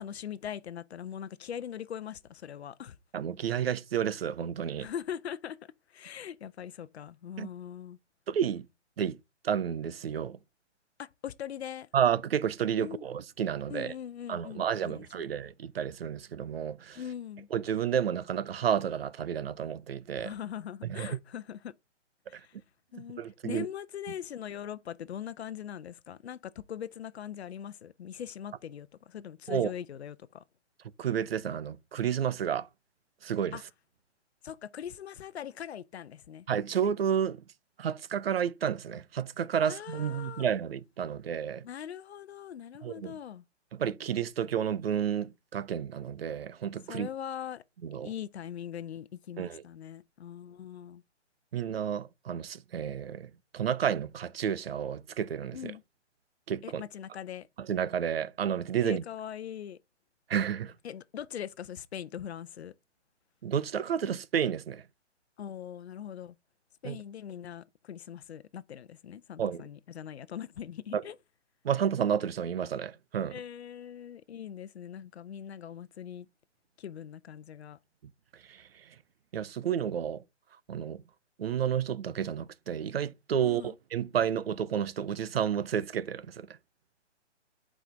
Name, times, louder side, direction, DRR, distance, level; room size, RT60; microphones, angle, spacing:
voice 1, 0.0-3.0 4.8-8.0 11.0-11.9 12.8-13.1 13.7-15.3 17.0-17.5 20.2-21.7 22.3-22.6 22.9-30.4 33.5-33.6 34.4-36.5 39.6-40.5 41.6-43.4 46.9-47.6 48.0-51.0 55.5-55.8 56.6-57.5 58.8-59.8 60.8-62.7 65.4-66.4 66.8-71.2 73.3-76.3 76.8-77.8 83.4-83.7, left 9 dB, 60° left, 0.7 m, -41 dB
voice 2, 3.1-4.9 7.4-7.5 8.3-8.7 9.0-9.2 9.4-10.4 11.9-13.9 14.3-17.0 17.5-20.3 20.9-21.2 22.3-22.4 22.9-23.7 29.5-29.7 31.0-32.7 33.2-33.6 36.5-37.4 37.8-41.6 42.8-43.2 43.7-47.1 47.8-48.1 49.4-49.6 51.5-55.7 56.5-56.8 57.6-59.0 60.3-60.7 63.4-64.8 66.8-67.0 69.4-69.6 70.9-71.0 71.6-73.4 78.5-78.8 79.3-80.2 80.7-81.0 81.4-86.5, right 8 dB, 55° right, 0.6 m, -31 dB
8.0 x 5.0 x 3.8 m
hypercardioid pair, 165°, 36 cm